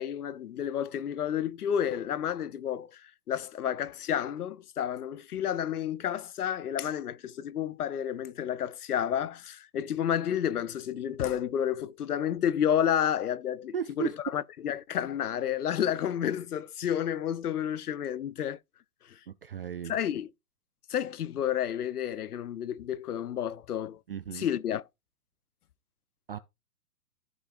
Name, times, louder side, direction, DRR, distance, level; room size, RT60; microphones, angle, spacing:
voice 1, 0.0-18.6 19.1-19.2 19.8-20.3 20.9-24.0 24.3-24.8, left 9 dB, 70° left, 0.7 m, -31 dB
voice 2, 13.7-14.3 19.3-19.9 24.1-24.5 26.3-26.4, right 9 dB, 40° right, 0.4 m, -35 dB
14.5 x 5.2 x 2.5 m
figure-of-eight pair, 125°, 48 cm